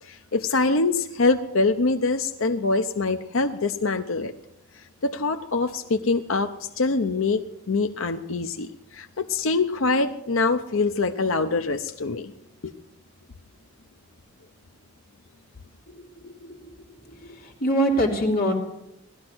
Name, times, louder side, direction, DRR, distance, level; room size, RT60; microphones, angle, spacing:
voice 1, 0.0-4.3 5.0-12.3 12.6-12.7, left 3 dB, 85° left, 7 dB, 0.8 m, -24 dB
voice 2, 15.9-16.7 17.2-18.5, equal, 45° left, 0 dB, 2.9 m, -25 dB
18.0 x 13.0 x 6.2 m, 0.88 s
head